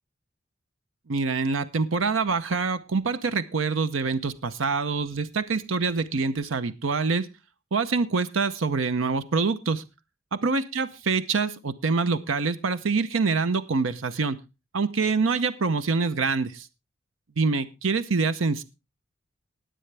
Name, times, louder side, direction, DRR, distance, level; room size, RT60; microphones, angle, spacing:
voice 1, 1.1-7.3 7.7-9.8 10.3-14.4 14.7-16.7 17.4-18.6, right 4 dB, 85° right, 12 dB, 0.7 m, -25 dB
20.0 x 7.7 x 3.3 m, 0.27 s
head